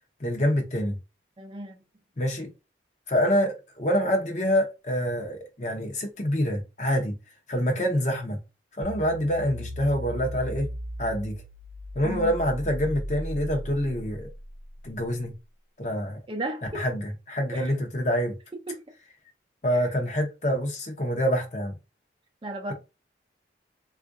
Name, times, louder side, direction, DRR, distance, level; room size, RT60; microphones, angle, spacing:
voice 1, 0.2-1.0 2.2-2.5 3.1-7.1 7.5-8.4 8.8-10.7 11.0-11.3 11.9-14.3 14.8-15.3 15.8-16.2 16.7-18.3 19.6-21.8, equal, 40° left, 0.7 m, -26 dB
voice 2, 1.4-1.8 12.0-12.3 16.3-16.8 17.5-17.7 18.7-18.8 19.7-19.9 22.4-22.7, right 2 dB, 25° right, 0.5 m, -34 dB
sound 1, 8.8-15.1, equal, 45° right, 0.9 m, -37 dB
3.6 x 2.4 x 2.5 m
head